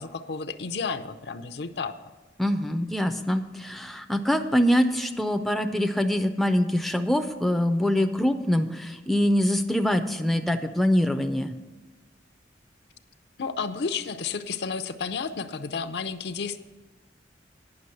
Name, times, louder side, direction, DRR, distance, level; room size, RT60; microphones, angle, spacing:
voice 1, 0.0-2.0 13.4-16.6, left 5 dB, 70° left, 10 dB, 0.6 m, -32 dB
voice 2, 2.4-11.5, equal, ahead, 6 dB, 0.4 m, -24 dB
9.6 x 6.0 x 7.7 m, 1.2 s
head